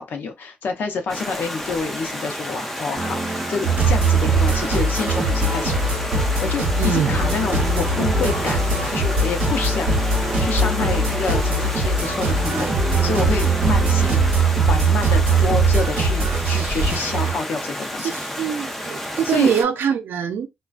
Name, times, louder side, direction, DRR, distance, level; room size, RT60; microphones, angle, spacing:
voice 1, 0.0-3.2 3.5-5.8 6.4-12.7 13.0-14.2 14.7-18.1 19.2-19.5, left 4 dB, 70° left, 0.6 m, -28 dB
Stream, 1.1-19.6, equal, 5° left, 0.4 m, -31 dB
sound 1, 2.9-14.3, right 3 dB, 30° right, 0.8 m, -30 dB
sound 2, 3.6-17.4, right 3 dB, 50° right, 1.1 m, -21 dB
voice 2, 6.8-7.1 18.0-20.5, right 7 dB, 90° right, 0.4 m, -22 dB
2.3 x 2.2 x 2.4 m
wide cardioid pair, 160°, 3 cm